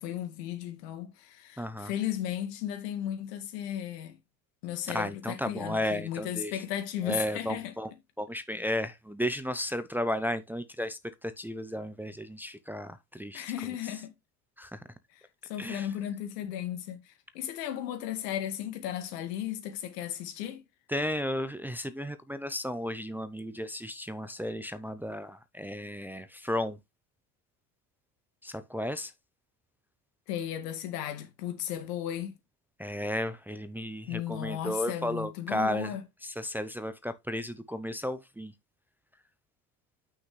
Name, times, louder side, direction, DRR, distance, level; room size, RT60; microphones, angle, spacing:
voice 1, 0.0-4.2 4.6-7.7 13.3-14.1 15.1-20.6 30.3-32.4 34.1-36.0, left 11 dB, 85° left, 2.1 m, -35 dB
voice 2, 1.6-1.9 4.9-6.5 7.0-7.9 8.2-13.4 14.6-14.8 15.6-15.8 20.9-26.8 28.4-29.1 32.8-35.9 36.4-38.5, equal, 5° right, 0.6 m, -34 dB
8.0 x 6.1 x 3.2 m
supercardioid pair, 110°, 47 cm